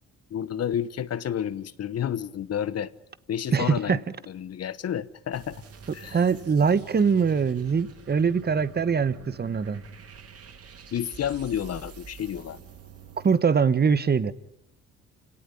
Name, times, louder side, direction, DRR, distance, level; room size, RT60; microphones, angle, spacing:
voice 1, 0.3-2.9 3.3-5.6 5.9-6.2 10.9-12.6, left 9 dB, 55° left, 1.1 m, -30 dB
voice 2, 3.5-4.0 6.1-9.8 13.2-14.3, right 6 dB, 35° right, 1.2 m, -23 dB
sound 1, 5.3-13.4, right 6 dB, 50° right, 2.4 m, -46 dB
28.5 x 18.0 x 10.0 m
cardioid pair, 90°, 30 cm